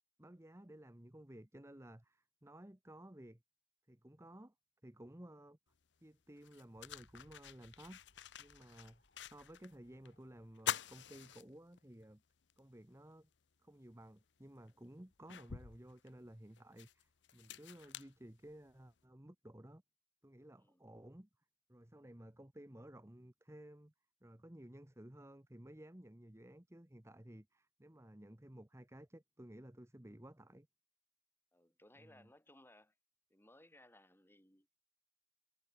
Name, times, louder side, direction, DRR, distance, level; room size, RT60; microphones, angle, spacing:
voice 1, 0.2-3.4 3.9-4.5 4.8-5.6 6.0-8.0 8.4-12.2 12.6-13.3 13.6-19.8 20.2-21.3 21.7-23.9 24.2-30.7 32.0-32.3, right 1 dB, 15° right, 1.2 m, -56 dB
sound 1, 5.7-5.8 6.4-9.7 10.0-10.1 10.5-12.0 12.5-12.6 14.0-14.1 14.7-18.9, left 8 dB, 75° left, 0.8 m, -46 dB
sound 2, 6.7-11.9, left 1 dB, 55° left, 3.4 m, -72 dB
voice 2, 31.5-32.9 33.3-34.7, left 1 dB, 10° left, 5.0 m, -63 dB
head